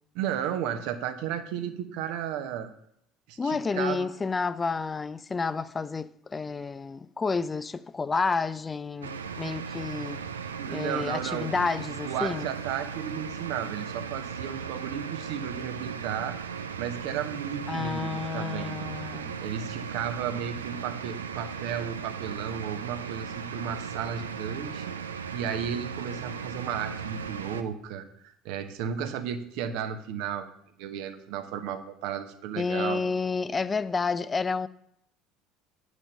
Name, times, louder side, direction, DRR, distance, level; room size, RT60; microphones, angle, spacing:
voice 1, 0.1-2.7 3.3-4.1 10.6-11.5 11.8-16.4 16.8-18.8 19.4-24.8 25.3-30.5 30.8-33.0, right 8 dB, 60° right, 1.0 m, -34 dB
voice 2, 3.4-10.2 10.7-12.5 17.7-19.4 32.6-34.7, left 4 dB, 25° left, 0.4 m, -30 dB
sound 1, 9.0-27.6, right 6 dB, 80° right, 0.6 m, -37 dB
8.7 x 6.4 x 6.6 m
figure-of-eight pair, 60°, 0 cm